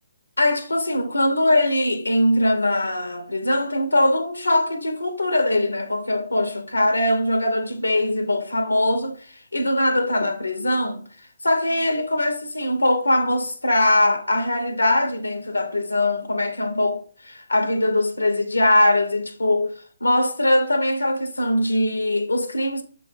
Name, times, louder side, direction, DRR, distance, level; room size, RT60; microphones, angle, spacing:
voice 1, 0.4-11.0 11.4-19.7 20.0-22.8, left 1 dB, 85° left, 0.8 m, -21 dB
6.1 x 3.1 x 5.1 m
figure-of-eight pair, 140°, 0 cm